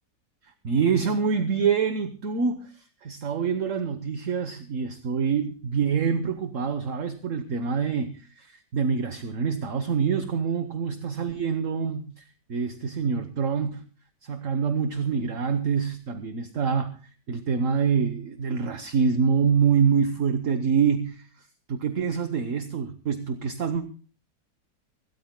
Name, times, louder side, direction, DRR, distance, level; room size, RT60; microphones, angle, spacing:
voice 1, 0.6-13.9 14.2-17.0 17.3-21.2 21.7-23.8, right 6 dB, 50° right, 1.2 m, -26 dB
25.5 x 13.5 x 2.2 m
omnidirectional pair, 2.0 m